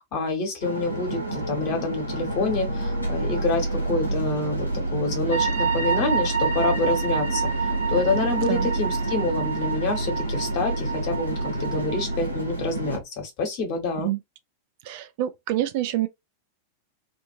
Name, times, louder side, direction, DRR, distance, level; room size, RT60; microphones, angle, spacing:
voice 1, 0.0-7.5 7.9-11.3 11.6-14.1, left 3 dB, 45° left, 1.3 m, -27 dB
sound 1, 0.6-13.0, right 2 dB, 90° right, 0.9 m, -28 dB
sound 2, 5.3-12.2, right 6 dB, 65° right, 1.0 m, -29 dB
voice 2, 14.9-16.1, right 14 dB, 50° right, 0.4 m, -26 dB
2.6 x 2.6 x 2.6 m
figure-of-eight pair, 90°, 0 cm